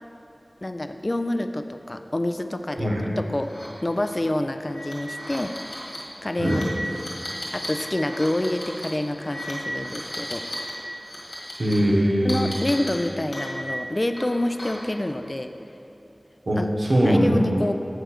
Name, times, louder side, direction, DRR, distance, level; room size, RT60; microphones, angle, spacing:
voice 1, 0.6-2.9 3.2-3.5 3.8-5.5 6.2-6.6 7.5-10.4 12.2-15.5 16.6-16.7 17.0-17.7, left 1 dB, 35° left, 8 dB, 0.3 m, -27 dB
sound 1, 3.4-3.7 4.0-4.1 4.6-10.7 11.0-11.7 12.3-13.8 14.2-14.9, equal, 85° left, 1.5 m, -35 dB
voice 2, 11.6-12.5 16.5-17.3, equal, 75° right, -3 dB, 1.0 m, -21 dB
7.6 x 3.4 x 6.0 m, 2.8 s
wide cardioid pair, 55°, 0 cm